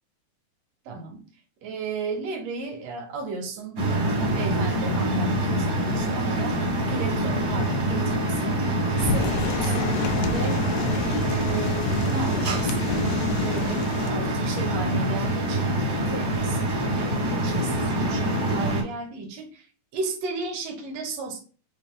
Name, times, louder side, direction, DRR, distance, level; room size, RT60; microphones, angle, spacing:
voice 1, 0.9-1.3 1.6-6.6 6.9-8.7 9.0-9.9 10.3-10.6 10.9-15.7 16.1-19.7 19.9-21.4, right 4 dB, 70° right, 3 dB, 1.9 m, -34 dB
sound 1, 3.8-18.8, right 1 dB, 40° right, 1.5 m, -25 dB
sound 2, 9.0-14.1, left 5 dB, 80° left, 1.9 m, -30 dB
4.9 x 2.7 x 3.5 m, 0.39 s
omnidirectional pair, 3.3 m